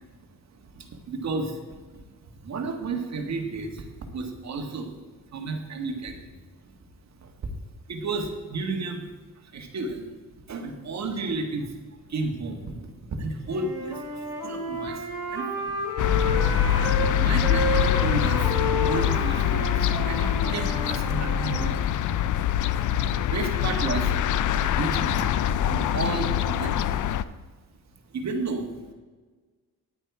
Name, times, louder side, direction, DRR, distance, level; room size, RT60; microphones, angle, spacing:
voice 1, 0.5-1.6 1.9-4.9 5.3-6.2 6.6-6.7 7.2-7.3 7.9-9.1 9.3-10.1 10.5-11.7 12.0-15.8 16.9-18.6 18.8-21.8 23.1-24.1 24.6-25.4 25.7-27.1 28.1-28.9, right 3 dB, 50° right, 4 dB, 1.7 m, -33 dB
Wind instrument woodwind instrument, 13.5-17.1 17.4-21.7, equal, 10° right, 3.9 m, -31 dB
sound 1, 16.0-27.2, left 10 dB, 60° left, 0.5 m, -24 dB
9.8 x 9.0 x 4.7 m, 1.4 s
cardioid pair, 110°, 34 cm